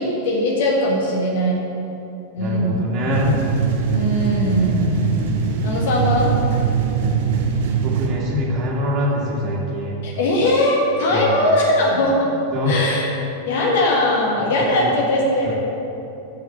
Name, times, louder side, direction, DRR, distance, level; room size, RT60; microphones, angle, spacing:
voice 1, 0.0-1.6 2.3-2.8 3.9-5.1 5.6-6.3 10.0-12.3 12.7-13.1 13.4-15.5, left 1 dB, 55° left, -2 dB, 1.7 m, -20 dB
voice 2, 2.4-3.4 7.8-10.0 11.1-11.4 12.5-12.8 14.7-14.9, left 1 dB, 35° right, -3 dB, 2.2 m, -24 dB
sound 1, 3.1-8.1, right 6 dB, 55° right, 1.2 m, -21 dB
8.4 x 6.4 x 6.7 m, 2.8 s
figure-of-eight pair, 90°, 0 cm